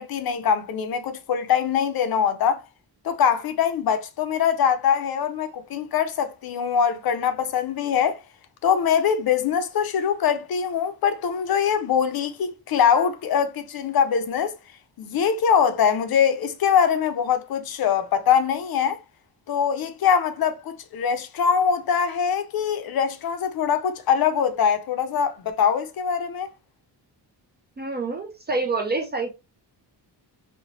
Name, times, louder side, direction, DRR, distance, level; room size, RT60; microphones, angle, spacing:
voice 1, 0.0-2.6 3.0-8.2 8.6-14.5 15.0-19.0 19.5-26.5, left 7 dB, 60° left, 0.5 m, -23 dB
voice 2, 27.8-29.4, right 3 dB, 25° right, 0.3 m, -27 dB
2.9 x 2.1 x 2.7 m
wide cardioid pair, 155°, 42 cm